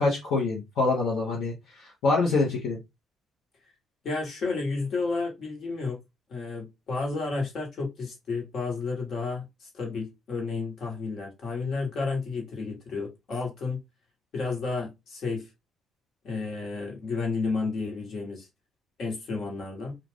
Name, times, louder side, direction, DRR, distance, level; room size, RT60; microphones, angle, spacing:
voice 1, 0.0-2.8, left 3 dB, 75° left, 0.9 m, -25 dB
voice 2, 4.0-6.0 6.3-13.8 14.3-15.4 16.2-18.5 19.0-20.0, left 4 dB, 60° left, 1.3 m, -31 dB
2.4 x 2.4 x 3.4 m
hypercardioid pair, 60°, 0 cm